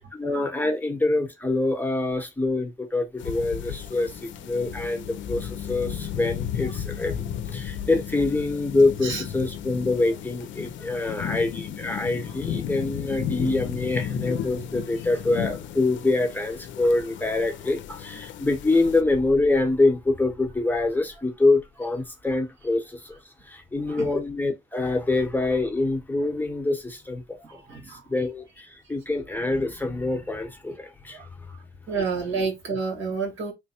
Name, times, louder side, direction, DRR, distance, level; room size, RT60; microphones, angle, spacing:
voice 1, 0.0-23.2 23.4-27.6 27.9-31.5, left 2 dB, 10° left, 1.0 m, -25 dB
sound 1, 3.2-19.0, left 9 dB, 70° left, 0.5 m, -34 dB
voice 2, 27.4-28.0 31.1-31.6 31.9-33.5, right 4 dB, 75° right, 1.6 m, -30 dB
3.3 x 2.1 x 4.2 m
cardioid pair, 90°, 20 cm